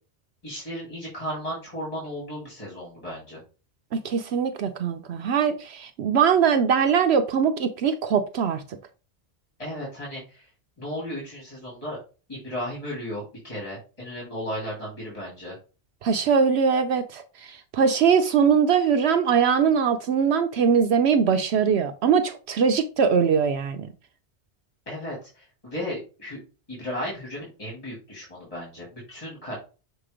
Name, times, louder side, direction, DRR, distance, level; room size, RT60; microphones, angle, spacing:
voice 1, 0.4-3.4 9.6-10.5 10.8-12.0 12.3-15.6 24.9-26.4 26.7-29.6, equal, 30° left, 2.7 m, -35 dB
voice 2, 4.0-8.6 16.0-23.9, right 6 dB, 75° right, 0.9 m, -21 dB
6.6 x 2.9 x 4.9 m
omnidirectional pair, 1.1 m